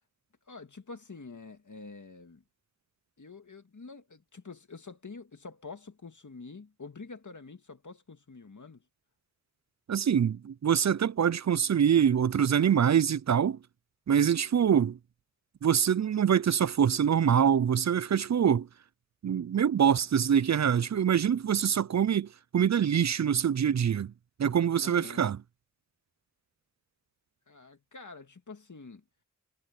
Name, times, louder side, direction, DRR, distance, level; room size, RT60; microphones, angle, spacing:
voice 1, 0.5-2.4 3.2-8.8 23.6-23.7 24.8-25.2 27.5-29.0, left 4 dB, 70° left, 2.2 m, -47 dB
voice 2, 9.9-13.6 14.1-15.0 15.6-18.7 19.2-24.1 24.4-25.4, right 8 dB, 60° right, 0.5 m, -25 dB
wide cardioid pair, 70°, 31 cm